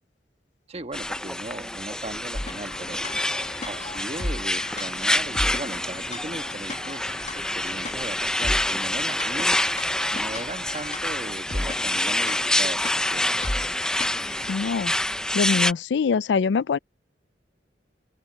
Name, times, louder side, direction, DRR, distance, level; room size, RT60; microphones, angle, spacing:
voice 1, 0.7-3.1 3.7-9.6 10.1-13.3, right 2 dB, 35° right, 1.3 m, -37 dB
sound 1, 0.9-15.7, left 1 dB, 5° left, 0.5 m, -27 dB
sound 2, 2.3-14.5, left 1 dB, 40° left, 1.8 m, -36 dB
voice 2, 14.5-14.9 15.3-16.8, left 5 dB, 85° left, 0.4 m, -23 dB
open air
head